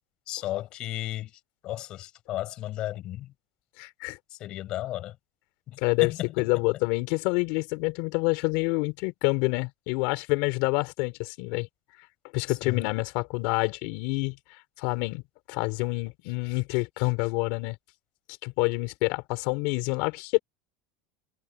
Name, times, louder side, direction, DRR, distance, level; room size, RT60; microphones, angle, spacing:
voice 1, 0.3-1.3 1.6-3.3 4.3-5.2 5.7-6.5 12.5-12.9, left 14 dB, 45° left, 5.4 m, -34 dB
voice 2, 3.8-4.2 5.8-11.7 12.3-14.4 14.8-15.2 15.5-17.8 18.4-20.4, left 26 dB, 65° left, 4.3 m, -27 dB
supercardioid pair, 140°, 2 cm